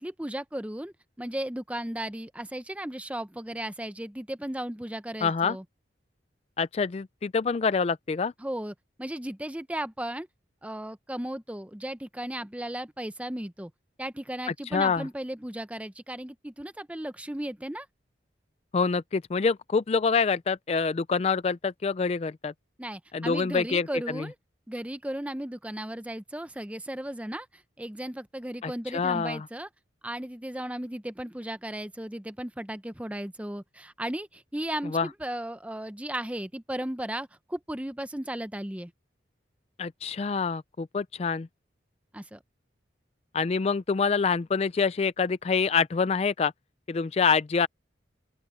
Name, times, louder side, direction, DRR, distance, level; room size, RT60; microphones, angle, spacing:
voice 1, 0.0-5.6 8.4-10.3 10.6-13.7 14.0-17.9 22.8-24.3 24.7-29.7 30.0-38.9 42.1-42.4, right 1 dB, 5° right, 0.7 m, -35 dB
voice 2, 5.2-5.6 6.6-8.3 14.7-15.1 18.7-22.5 23.1-23.9 24.1-24.3 28.6-29.5 34.8-35.1 39.8-41.5 43.3-46.5 46.9-47.7, left 5 dB, 35° left, 0.3 m, -26 dB
open air
head